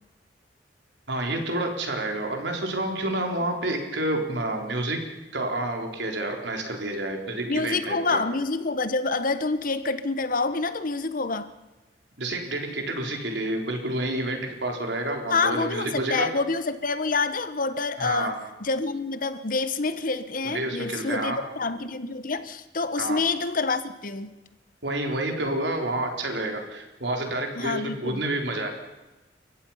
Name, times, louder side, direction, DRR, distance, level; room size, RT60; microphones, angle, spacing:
voice 1, 1.1-5.0 5.3-8.2 12.2-16.3 18.0-18.3 20.4-21.4 23.0-23.2 24.8-28.7, right 1 dB, 75° right, 3.9 m, -29 dB
voice 2, 7.4-11.5 15.3-24.3 27.6-28.2, left 3 dB, 50° left, 1.2 m, -27 dB
29.5 x 15.5 x 5.7 m
head